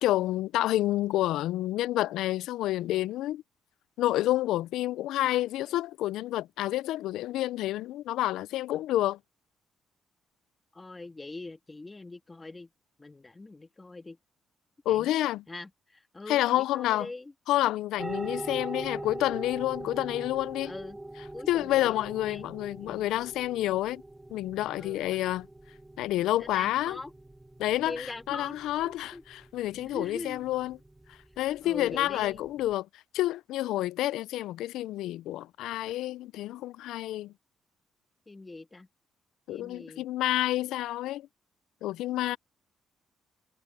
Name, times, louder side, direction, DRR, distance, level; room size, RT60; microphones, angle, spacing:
voice 1, 0.0-3.4 4.0-9.2 14.9-15.4 16.3-17.1 17.5-20.7 21.5-24.0 24.3-25.5 26.0-27.0 27.6-29.1 29.5-30.8 31.4-32.9 33.1-37.3 39.5-41.3 41.8-42.4, left 15 dB, 90° left, 0.4 m, -29 dB
voice 2, 10.7-12.7 13.0-14.2 14.9-15.1 15.5-17.3 20.6-21.0 21.3-22.5 22.8-23.1 24.8-25.3 26.4-27.1 27.8-28.6 28.8-29.2 29.7-30.5 31.6-32.4 38.3-38.9 39.5-40.1, left 2 dB, 20° left, 2.0 m, -42 dB
sound 1, 18.0-32.7, right 1 dB, 10° right, 2.2 m, -43 dB
cardioid pair, 90°, 0 cm